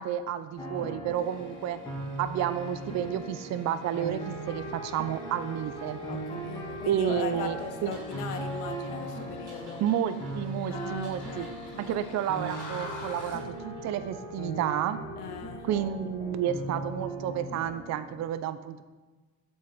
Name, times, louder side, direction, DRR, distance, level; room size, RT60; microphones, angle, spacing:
voice 1, 0.0-1.8 2.2-6.0 6.9-7.6 7.8-7.9 9.8-11.5 11.8-15.0 15.6-18.8, right 10 dB, 40° right, 12 dB, 0.5 m, -31 dB
sound 1, 0.6-18.2, right 2 dB, 10° left, 2.5 m, -39 dB
sound 2, 1.2-13.5, left 3 dB, 45° left, 2.2 m, -50 dB
voice 2, 6.1-9.9 10.7-12.0 15.2-15.7, left 7 dB, 75° left, 7 dB, 0.8 m, -39 dB
sound 3, 7.9-14.1, right 2 dB, 85° right, 1.8 m, -55 dB
7.4 x 4.5 x 5.2 m, 1.2 s
figure-of-eight pair, 50°, 45 cm